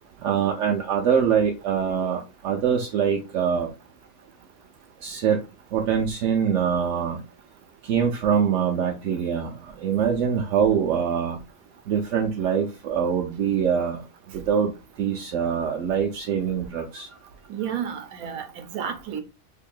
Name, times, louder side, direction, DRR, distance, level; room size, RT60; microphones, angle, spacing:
voice 1, 0.2-3.7 5.0-5.4 5.7-7.2 7.8-11.4 11.9-14.0 14.3-14.7 15.0-17.1, right 7 dB, 70° right, 0.9 m, -24 dB
voice 2, 17.5-19.2, right 8 dB, 85° right, 1.1 m, -31 dB
2.9 x 2.6 x 3.8 m
omnidirectional pair, 1.5 m